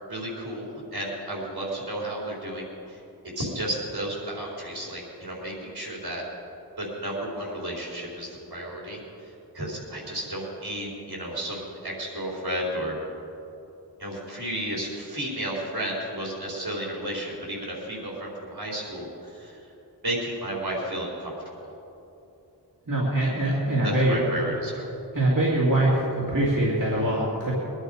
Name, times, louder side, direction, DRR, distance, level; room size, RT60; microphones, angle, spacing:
voice 1, 0.1-3.0 3.4-6.2 6.8-13.0 14.0-19.7 20.0-21.3 21.6-21.7 23.2-24.9, right 1 dB, 70° right, -4 dB, 4.3 m, -33 dB
voice 2, 22.9-24.2 25.1-27.5, right 1 dB, 50° right, -6 dB, 2.7 m, -23 dB
22.5 x 11.0 x 5.1 m, 2.9 s
wide cardioid pair, 45°, 40 cm